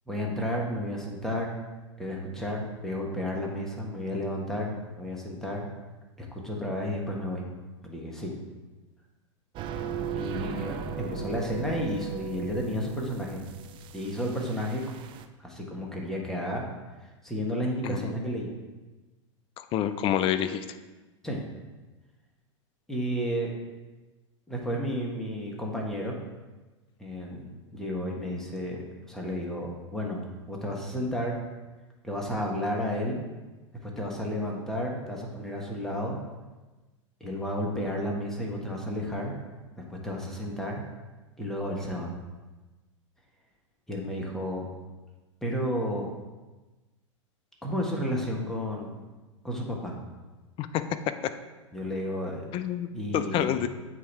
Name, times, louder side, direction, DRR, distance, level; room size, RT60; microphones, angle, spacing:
voice 1, 0.1-1.5 2.0-5.7 6.2-7.5 7.8-8.3 10.1-13.5 13.9-14.9 15.4-16.6 17.2-18.5 21.2-21.4 22.9-23.5 24.5-26.2 27.0-28.8 29.1-31.4 32.0-33.2 33.8-36.2 37.2-39.3 39.8-40.8 41.4-42.1 43.9-44.7 45.4-46.1 47.6-48.9 49.4-49.9 51.7-52.6 52.9-53.5, equal, 5° left, -2 dB, 1.3 m, -32 dB
sound 1, 9.6-15.3, right 7 dB, 30° right, 0.4 m, -37 dB
voice 2, 19.6-20.7 50.6-50.8 52.5-52.9 53.1-53.7, left 10 dB, 35° left, 11 dB, 0.4 m, -28 dB
8.2 x 2.9 x 4.7 m, 1.2 s
hypercardioid pair, 100°, 16 cm